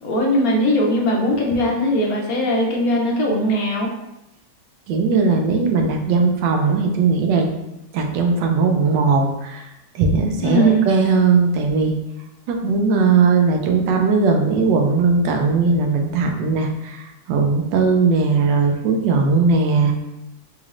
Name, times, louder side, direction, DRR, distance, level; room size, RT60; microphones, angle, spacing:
voice 1, 0.0-3.9 10.4-10.8, equal, 65° left, -1 dB, 1.0 m, -19 dB
voice 2, 4.9-7.5 7.9-9.7 9.9-11.9 12.5-17.0 17.3-19.9, right 4 dB, 90° right, 3 dB, 1.3 m, -18 dB
4.0 x 3.0 x 2.5 m, 0.89 s
omnidirectional pair, 1.9 m